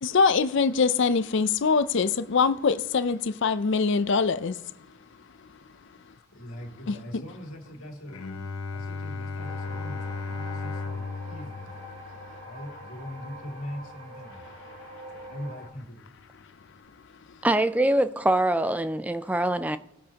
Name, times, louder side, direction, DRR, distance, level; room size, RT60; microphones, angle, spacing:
voice 1, 0.0-4.6 6.9-7.2, left 5 dB, 55° left, 0.5 m, -23 dB
voice 2, 6.3-11.7 12.4-14.4 15.3-16.0, equal, 75° left, 2.3 m, -41 dB
Bowed string instrument, 8.1-13.8, left 4 dB, 90° left, 0.9 m, -36 dB
sound 1, 9.4-15.7, equal, 80° right, 3.7 m, -44 dB
voice 3, 17.4-19.8, right 1 dB, 5° right, 0.3 m, -24 dB
19.0 x 8.4 x 2.9 m
head